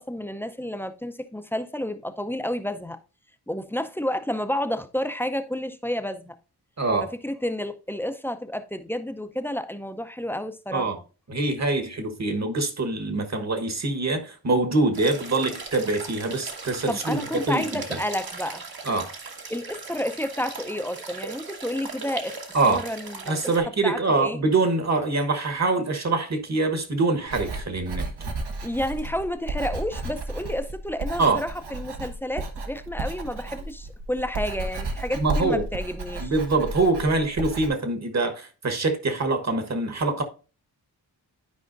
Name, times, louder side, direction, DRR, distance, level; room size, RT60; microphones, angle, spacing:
voice 1, 0.0-3.0 3.5-6.3 7.2-10.9 16.9-18.6 19.5-23.5 23.8-24.4 28.6-36.3, left 1 dB, 5° left, 0.5 m, -30 dB
voice 2, 6.8-7.1 10.7-10.9 11.3-18.0 18.8-19.1 22.5-22.8 23.3-28.1 31.2-31.4 35.1-35.6 36.2-40.2, right 3 dB, 45° right, 1.3 m, -24 dB
sound 1, 14.9-23.6, right 4 dB, 65° right, 1.5 m, -38 dB
Writing, 27.3-37.7, right 2 dB, 85° right, 1.3 m, -33 dB
12.0 x 4.9 x 2.5 m
wide cardioid pair, 115°, 39 cm